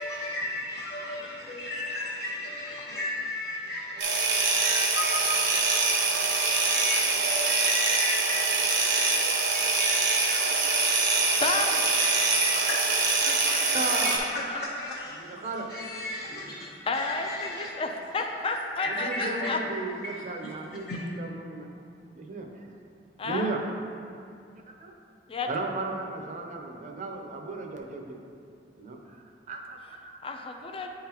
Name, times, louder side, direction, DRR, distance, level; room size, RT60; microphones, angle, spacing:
voice 1, 0.0-17.7 18.5-19.5 20.0-20.5 20.9-21.0, left 2 dB, 60° left, -6 dB, 0.7 m, -36 dB
sound 1, 4.0-14.2, right 4 dB, 75° right, 0.9 m, -24 dB
voice 2, 11.4-11.8 13.3-14.6 16.9-19.6 23.2-23.5 25.3-25.7 30.2-30.9, left 3 dB, 30° left, 4 dB, 0.4 m, -32 dB
voice 3, 13.7-14.2 15.4-15.7 18.9-21.7 22.1-22.7 23.2-23.6 24.8-24.9 25.5-28.2 28.8-29.2 29.5-30.2, right 3 dB, 45° right, 2 dB, 0.6 m, -35 dB
9.3 x 3.8 x 2.9 m, 2.4 s
head